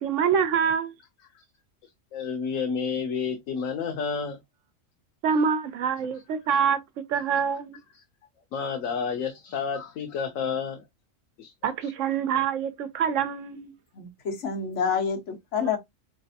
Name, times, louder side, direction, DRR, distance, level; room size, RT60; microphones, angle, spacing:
voice 1, 0.0-0.9 5.2-6.8 7.1-7.8 11.6-13.7, right 7 dB, 75° right, 1.0 m, -25 dB
voice 2, 2.1-4.4 7.9-8.0 8.5-10.8 11.4-11.5 11.8-11.9, left 6 dB, 85° left, 1.1 m, -30 dB
voice 3, 13.9-15.8, left 6 dB, 65° left, 1.4 m, -28 dB
4.1 x 3.2 x 2.6 m
omnidirectional pair, 1.3 m